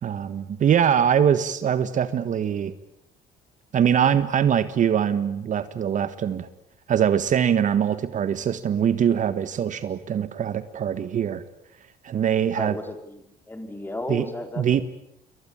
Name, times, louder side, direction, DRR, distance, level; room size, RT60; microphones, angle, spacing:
voice 1, 0.0-2.7 3.7-6.5 6.9-11.4 12.0-12.8 14.1-14.3 14.6-14.8, right 8 dB, 50° right, 13 dB, 1.5 m, -22 dB
voice 2, 12.6-14.7, left 1 dB, 10° left, 7 dB, 4.6 m, -34 dB
28.0 x 23.0 x 8.8 m, 0.77 s
cardioid pair, 110°, 17 cm